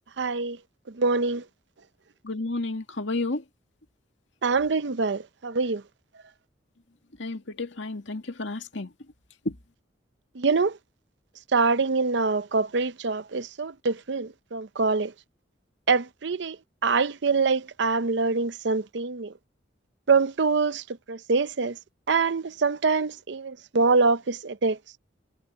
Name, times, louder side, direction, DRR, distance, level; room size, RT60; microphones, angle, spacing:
voice 1, 0.2-0.6 1.0-1.4 4.4-5.8 10.4-10.8 11.5-15.1 15.9-16.6 16.8-19.3 20.1-21.8 22.1-24.8, right 4 dB, 65° right, 0.6 m, -24 dB
voice 2, 2.2-3.4 7.2-8.9 9.5-9.6, left 2 dB, 75° left, 2.2 m, -31 dB
head